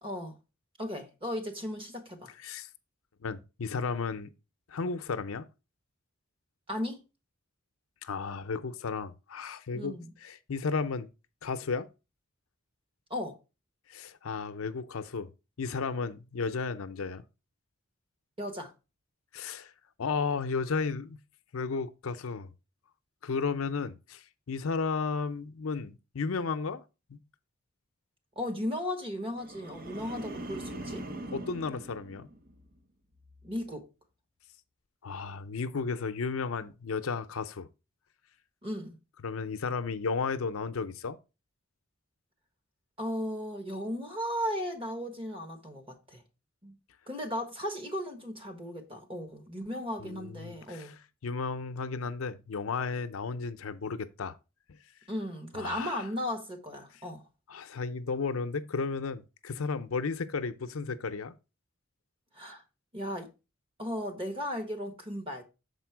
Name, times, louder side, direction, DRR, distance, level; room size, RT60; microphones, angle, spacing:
voice 1, 0.0-0.4 0.8-2.3 6.7-7.0 9.7-10.1 13.1-13.4 18.4-18.7 28.3-31.1 33.4-33.9 38.6-39.0 43.0-46.2 46.6-46.7 47.1-50.9 55.1-57.2 62.3-62.6 62.9-63.3 63.8-65.4, equal, 25° right, 1.3 m, -36 dB
voice 2, 3.2-4.3 4.7-5.5 8.0-11.1 11.4-11.9 13.9-15.3 15.6-17.2 19.3-19.7 20.0-21.2 21.5-22.5 23.2-26.8 27.1-27.2 31.3-32.3 35.0-37.7 39.2-41.2 50.0-51.0 51.2-54.4 55.5-56.0 57.5-61.3, left 4 dB, 85° left, 0.6 m, -33 dB
sound 1, 29.3-32.8 33.2-33.6, right 1 dB, 45° right, 0.8 m, -42 dB
6.8 x 4.3 x 4.5 m
head